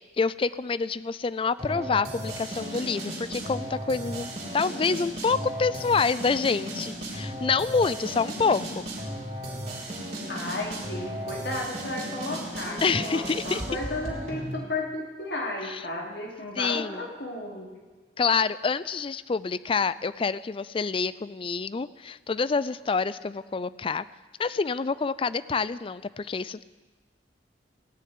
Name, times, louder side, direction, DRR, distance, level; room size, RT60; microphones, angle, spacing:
voice 1, 0.2-8.8 12.8-13.6 15.7-15.8 16.6-17.0 18.2-24.0 24.4-26.6, left 5 dB, 30° left, 17 dB, 0.4 m, -27 dB
sound 1, 1.6-14.5, right 1 dB, 40° right, 3.7 m, -35 dB
voice 2, 10.3-17.7, left 2 dB, 70° left, -1 dB, 3.3 m, -34 dB
17.0 x 6.7 x 9.6 m, 1.3 s
head